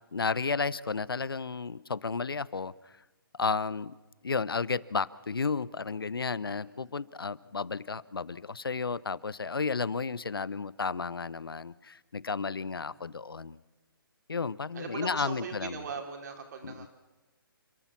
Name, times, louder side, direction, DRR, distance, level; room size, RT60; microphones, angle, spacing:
voice 1, 0.1-2.7 3.4-3.9 4.2-13.6 14.3-15.8 16.6-16.9, left 4 dB, 80° left, 20 dB, 0.8 m, -32 dB
voice 2, 6.4-6.9 12.7-13.2 14.7-16.9, right 6 dB, 50° right, 3 dB, 4.2 m, -41 dB
29.5 x 14.0 x 7.2 m, 1.2 s
figure-of-eight pair, 140°, 12 cm